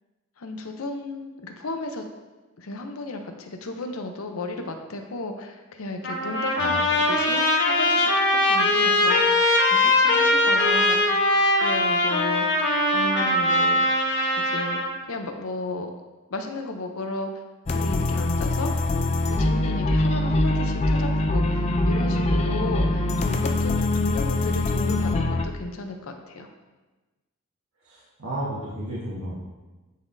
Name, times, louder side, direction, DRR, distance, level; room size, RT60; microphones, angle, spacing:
voice 1, 0.4-2.1 2.6-11.2 11.6-12.5 12.9-13.8 14.4-15.9 16.3-17.4 17.7-18.8 19.3-26.5, left 2 dB, 85° left, 4 dB, 0.7 m, -34 dB
Trumpet, 6.0-15.0, left 1 dB, 55° left, 1.1 m, -21 dB
voice 2, 6.6-6.9 27.8-29.4, right 1 dB, 85° right, -8 dB, 1.4 m, -33 dB
sound 1, 17.7-25.4, left 2 dB, 30° left, 0.4 m, -23 dB
10.0 x 4.1 x 2.7 m, 1.2 s
head